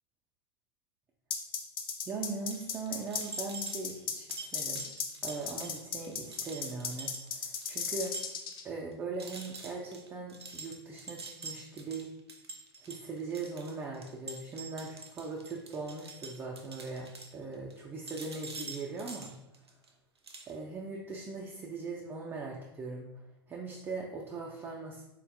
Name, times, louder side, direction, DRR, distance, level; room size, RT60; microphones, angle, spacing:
sound 1, 1.3-8.6, left 6 dB, 60° left, 0.4 m, -35 dB
voice 1, 2.1-4.3 4.5-4.9 5.2-8.1 8.6-12.1 12.8-19.3 20.5-23.1 23.5-25.0, right 3 dB, 15° right, -2 dB, 0.3 m, -40 dB
sound 2, 2.5-8.6 8.9-9.0 9.2-17.8 18.1-19.9 20.2-20.5, right 3 dB, 80° right, 0.4 m, -46 dB
3.8 x 2.1 x 2.6 m, 0.94 s
figure-of-eight pair, 90°, 13 cm